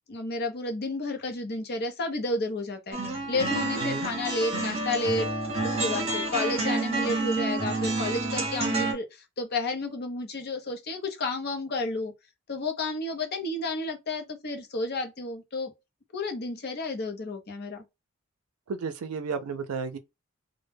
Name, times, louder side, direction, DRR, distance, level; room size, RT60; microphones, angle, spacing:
voice 1, 0.1-5.3 5.6-12.1 12.5-15.7 16.1-17.8, left 2 dB, 50° left, 0.6 m, -31 dB
sound 1, 2.9-8.9, right 2 dB, 30° right, 0.8 m, -29 dB
voice 2, 3.8-4.1 18.7-20.0, right 5 dB, 90° right, 0.5 m, -33 dB
2.1 x 2.0 x 3.2 m
head